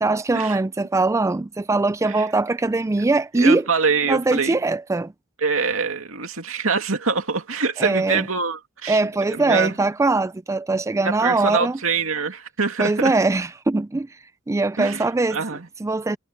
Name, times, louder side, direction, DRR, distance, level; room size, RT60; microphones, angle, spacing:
voice 1, 0.0-3.6 4.1-5.1 7.8-8.3 8.9-11.8 12.8-14.1 14.5-15.4 15.8-16.2, right 3 dB, 15° right, 0.3 m, -21 dB
voice 2, 3.3-4.6 5.4-9.0 9.3-9.8 11.0-13.1 14.8-15.7, right 5 dB, 80° right, 2.5 m, -24 dB
head